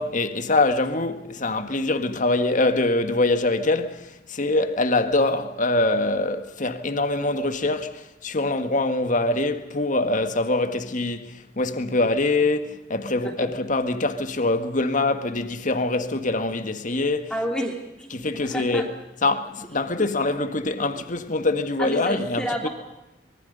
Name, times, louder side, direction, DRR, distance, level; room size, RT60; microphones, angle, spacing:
voice 1, 0.0-17.3 18.1-18.9 19.2-22.7, left 2 dB, 45° left, 1.7 m, -24 dB
voice 2, 17.3-18.2 18.4-18.8 21.0-21.1 21.8-22.7, equal, 5° left, 3.0 m, -30 dB
25.5 x 23.0 x 5.5 m
head